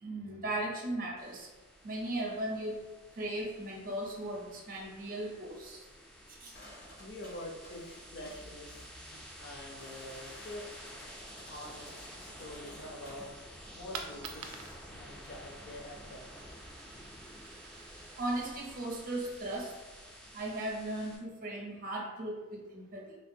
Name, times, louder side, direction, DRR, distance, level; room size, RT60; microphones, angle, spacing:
voice 1, 0.0-1.5 1.8-2.8 3.2-5.8 6.4-6.5 18.2-19.7 20.3-23.2, right 1 dB, 40° right, -1 dB, 0.6 m, -37 dB
sound 1, 1.2-21.2, equal, 5° left, 0.3 m, -51 dB
sound 2, 6.5-13.3, equal, 80° left, 1.3 m, -54 dB
voice 2, 7.0-10.7 11.5-13.3 13.7-16.2 20.2-20.3, left 1 dB, 55° left, 1 dB, 0.5 m, -46 dB
Coin (dropping), 13.7-19.6, right 5 dB, 80° right, 0.4 m, -50 dB
3.3 x 2.3 x 2.6 m, 1.2 s
head